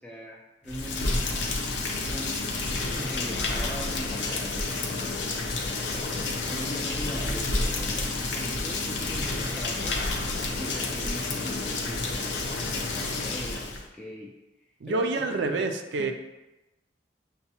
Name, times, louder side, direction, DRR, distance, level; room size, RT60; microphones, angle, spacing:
voice 1, 0.0-1.4 2.0-2.5 2.9-5.3 5.8-10.0 10.6-14.3 14.9-15.6 16.0-16.1, equal, 5° left, -4 dB, 0.3 m, -40 dB
Rain, 0.6-13.8, left 2 dB, 75° left, 0.6 m, -30 dB
voice 2, 14.8-16.1, right 3 dB, 75° right, 6 dB, 0.4 m, -27 dB
6.6 x 2.2 x 2.8 m, 1.0 s
head